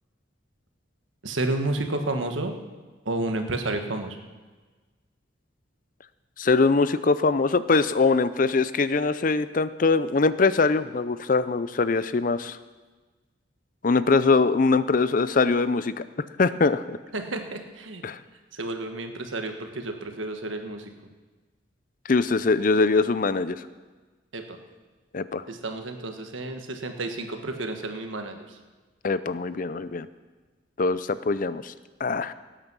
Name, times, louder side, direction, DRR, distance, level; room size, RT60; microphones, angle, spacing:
voice 1, 1.2-2.5 3.0-4.2 17.1-18.0 18.5-20.9 24.3-24.6 25.5-28.6, right 2 dB, 90° right, 5 dB, 1.5 m, -31 dB
voice 2, 6.4-12.6 13.8-16.0 16.4-17.0 18.0-18.2 22.1-23.6 25.1-25.4 29.0-30.1 30.8-31.7 32.0-32.3, left 4 dB, 45° left, 14 dB, 0.5 m, -22 dB
18.0 x 9.0 x 6.2 m, 1.3 s
head